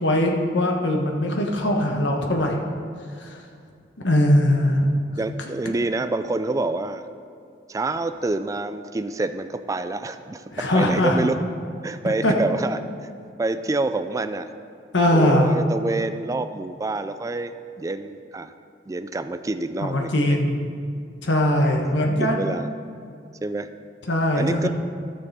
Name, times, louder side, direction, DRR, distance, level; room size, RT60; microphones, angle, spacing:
voice 1, 0.0-2.6 3.2-3.4 4.0-4.9 10.5-11.3 12.2-12.3 14.9-15.6 19.8-20.7 21.2-22.5 24.1-24.7, left 1 dB, 85° left, 1 dB, 1.3 m, -21 dB
voice 2, 5.2-7.0 7.7-11.4 11.8-13.1 13.4-14.5 15.1-18.5 18.9-20.4 22.2-22.7 23.4-23.7 24.4-24.7, right 2 dB, 20° right, 9 dB, 0.3 m, -27 dB
13.0 x 6.7 x 4.2 m, 2.4 s
head